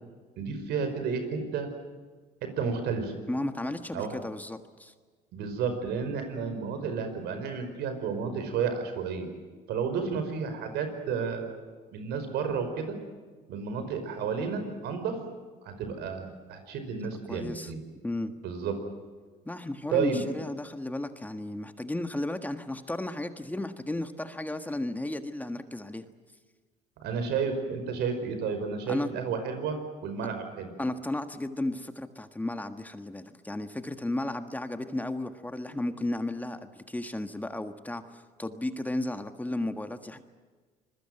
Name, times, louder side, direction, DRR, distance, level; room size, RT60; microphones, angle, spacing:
voice 1, 0.4-1.7 2.4-3.1 3.9-4.1 5.3-9.3 9.7-11.6 11.9-13.0 13.5-15.2 15.6-17.8 18.4-18.8 19.9-20.2 27.0-30.7, right 5 dB, 80° right, 7 dB, 5.1 m, -31 dB
voice 2, 3.3-4.9 17.3-17.7 18.0-18.3 19.5-26.0 28.9-29.1 30.8-40.2, left 1 dB, 10° left, 8 dB, 1.5 m, -34 dB
26.5 x 21.5 x 7.9 m, 1.4 s
cardioid pair, 110°, 17 cm